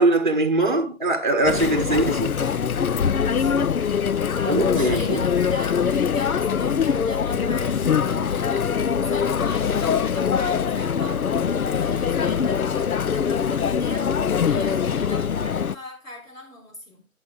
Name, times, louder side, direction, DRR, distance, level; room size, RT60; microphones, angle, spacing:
voice 1, 0.0-2.3 4.5-5.2, right 2 dB, 35° right, 1.2 m, -21 dB
Chatter, 1.4-15.8, left 7 dB, 85° left, 0.6 m, -23 dB
voice 2, 4.3-17.1, left 1 dB, 65° left, 4.7 m, -41 dB
15.0 x 9.1 x 2.3 m
figure-of-eight pair, 170°, 42 cm